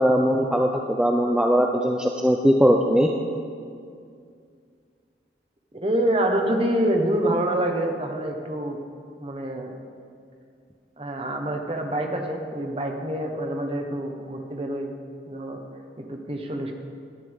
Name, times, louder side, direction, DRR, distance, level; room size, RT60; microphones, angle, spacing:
voice 1, 0.0-3.1, equal, 5° right, 2 dB, 0.5 m, -20 dB
voice 2, 5.7-8.8 9.2-9.7 11.0-15.0 15.3-15.6 16.1-16.7, right 1 dB, 30° right, 3 dB, 1.2 m, -26 dB
18.5 x 12.0 x 3.6 m, 2.3 s
head